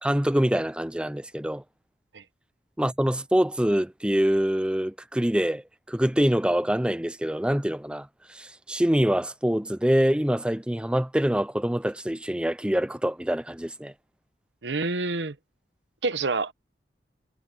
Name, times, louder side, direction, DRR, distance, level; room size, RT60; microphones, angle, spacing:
voice 1, 0.0-1.6 2.8-13.9, equal, 5° right, 0.5 m, -25 dB
voice 2, 14.6-15.4 16.0-16.5, right 3 dB, 85° right, 1.0 m, -27 dB
head